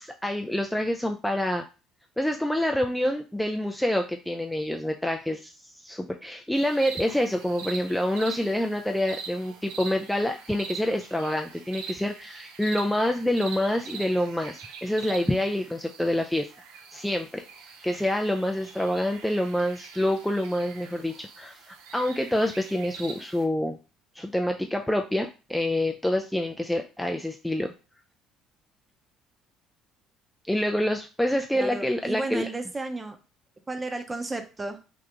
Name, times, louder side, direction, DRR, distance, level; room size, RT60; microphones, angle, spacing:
voice 1, 0.0-1.6 2.2-16.5 16.9-17.4 17.8-23.8 24.2-27.7 30.5-32.5, left 1 dB, 5° left, 3 dB, 0.4 m, -27 dB
sound 1, 6.5-23.4, right 6 dB, 75° right, 0.6 m, -43 dB
voice 2, 31.5-33.2 33.7-34.8, right 2 dB, 20° right, 6 dB, 0.7 m, -33 dB
2.9 x 2.4 x 3.5 m, 0.32 s
hypercardioid pair, 60°, 0 cm